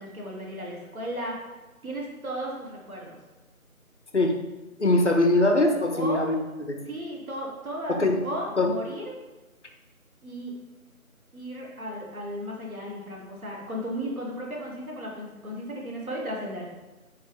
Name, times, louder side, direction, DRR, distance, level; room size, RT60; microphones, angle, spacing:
voice 1, 0.0-1.4 1.8-3.2 5.9-6.3 6.9-8.0 8.2-9.1 10.2-10.5 11.3-16.7, equal, 70° right, -2 dB, 1.3 m, -35 dB
voice 2, 4.8-6.4 6.7-6.8 7.9-8.2 8.6-8.7, left 2 dB, 55° left, 4 dB, 0.6 m, -22 dB
4.5 x 3.4 x 3.0 m, 1.1 s
figure-of-eight pair, 170°, 43 cm